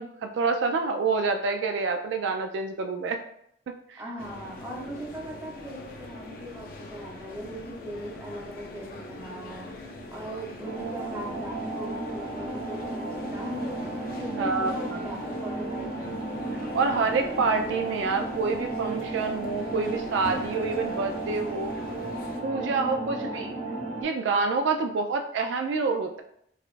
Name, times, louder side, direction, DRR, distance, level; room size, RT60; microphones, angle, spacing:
voice 1, 0.0-3.2 3.9-4.0 14.3-15.1 16.7-21.7 22.4-23.5 24.0-26.2, right 4 dB, 75° right, 6 dB, 0.3 m, -27 dB
voice 2, 4.0-9.7 10.1-13.8 14.1-16.1 22.6-23.5 24.8-24.9, equal, 15° right, -3 dB, 0.8 m, -39 dB
sound 1, 4.2-22.4, left 2 dB, 50° left, 0.5 m, -43 dB
sound 2, 10.6-24.0, right 2 dB, 45° right, 1.1 m, -34 dB
4.7 x 2.3 x 2.5 m, 0.71 s
head